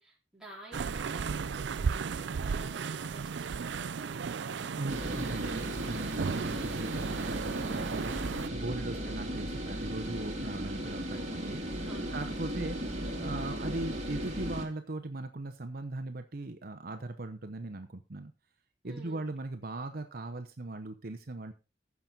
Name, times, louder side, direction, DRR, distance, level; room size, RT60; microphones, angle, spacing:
voice 1, 0.0-4.8 8.9-9.2 11.1-12.2 12.6-12.7 18.8-19.3, right 2 dB, 5° right, -4 dB, 4.2 m, -51 dB
sound 1, 0.7-8.5, right 5 dB, 70° right, 0.4 m, -35 dB
voice 2, 4.7-11.6 12.1-12.8 13.2-18.3 18.8-21.5, right 2 dB, 55° right, 8 dB, 0.8 m, -39 dB
sound 2, 4.9-14.7, equal, 40° right, 2.4 m, -36 dB
15.0 x 6.0 x 3.9 m, 0.31 s
head